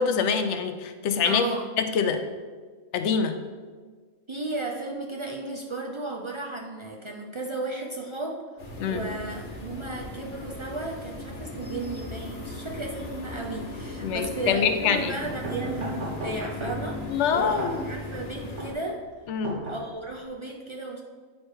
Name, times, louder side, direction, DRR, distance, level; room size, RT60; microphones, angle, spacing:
voice 1, 0.0-1.4 1.8-2.2 2.9-3.3 8.8-9.0 14.0-15.1 17.1-17.8 19.3-19.6, left 6 dB, 70° left, 8 dB, 0.8 m, -25 dB
voice 2, 1.2-1.7 4.3-8.4 8.8-19.0 19.7-21.0, right 2 dB, 50° right, 0 dB, 0.3 m, -34 dB
sound 1, 8.6-18.7, left 1 dB, 55° left, 1.3 m, -37 dB
sound 2, 15.3-20.3, right 1 dB, 70° right, 1.6 m, -37 dB
9.2 x 3.3 x 4.5 m, 1.5 s
omnidirectional pair, 1.3 m